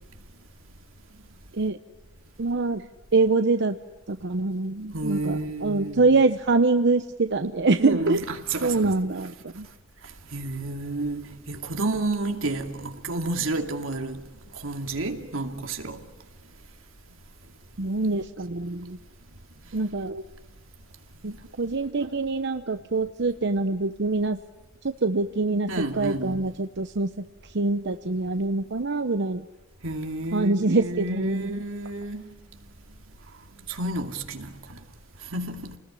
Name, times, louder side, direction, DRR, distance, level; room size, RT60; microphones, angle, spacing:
voice 1, 2.4-3.8 4.1-8.2 8.6-9.7 17.8-19.0 19.7-20.2 21.2-24.4 24.8-29.5 30.3-31.6, right 3 dB, 60° right, 0.8 m, -25 dB
voice 2, 4.9-6.0 7.8-9.0 10.0-14.2 14.5-16.0 25.7-26.5 29.8-32.4 33.7-34.8 35.2-35.8, right 2 dB, 90° right, 2.6 m, -31 dB
29.5 x 20.0 x 9.9 m
head